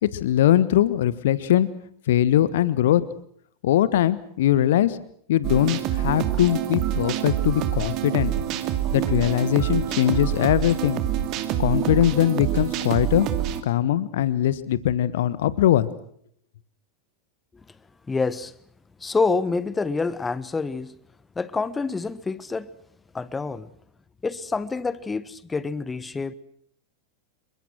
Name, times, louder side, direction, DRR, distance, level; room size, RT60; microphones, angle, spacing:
voice 1, 0.0-1.7 2.1-3.0 3.6-5.0 5.3-8.3 8.9-11.0 11.6-13.3 13.6-15.9, left 12 dB, 55° left, 1.4 m, -21 dB
sound 1, 5.4-13.6, right 11 dB, 40° right, 2.6 m, -26 dB
voice 2, 18.1-18.5 19.0-20.9 21.3-22.7 23.1-23.7 24.2-26.3, left 4 dB, 15° left, 1.2 m, -27 dB
28.0 x 24.0 x 6.2 m
figure-of-eight pair, 90°, 0 cm